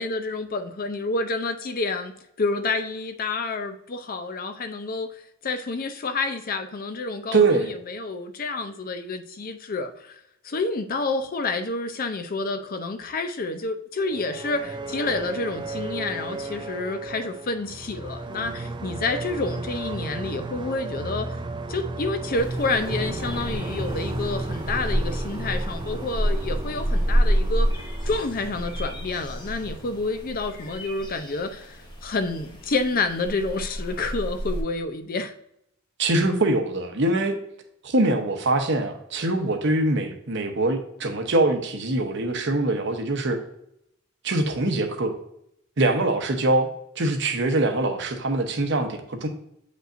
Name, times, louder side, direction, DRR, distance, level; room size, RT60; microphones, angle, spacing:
voice 1, 0.0-5.1 5.4-10.2 10.4-21.3 21.7-27.7 28.0-31.8 32.0-35.3, left 3 dB, 45° left, 8 dB, 0.6 m, -29 dB
voice 2, 7.3-7.8 36.0-37.4 37.8-43.4 44.2-45.1 45.8-46.7 47.0-49.3, right 2 dB, 60° right, 5 dB, 0.9 m, -23 dB
sound 1, 14.0-30.9, right 2 dB, 25° right, 0.4 m, -34 dB
sound 2, 22.4-34.6, equal, 20° left, 1.1 m, -29 dB
7.8 x 5.2 x 2.6 m, 0.76 s
head